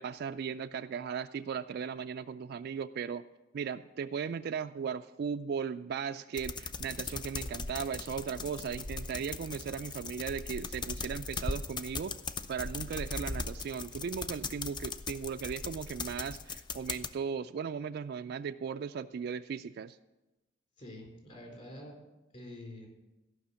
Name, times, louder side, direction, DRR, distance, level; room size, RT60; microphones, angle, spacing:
voice 1, 0.0-3.2 3.5-12.2 12.5-20.0, right 6 dB, 55° right, 9 dB, 0.3 m, -37 dB
sound 1, 6.4-17.1, left 4 dB, 25° left, 0.4 m, -39 dB
voice 2, 20.8-22.0 22.3-22.9, left 1 dB, 40° left, -1 dB, 4.0 m, -47 dB
14.5 x 5.8 x 6.9 m, 1.0 s
head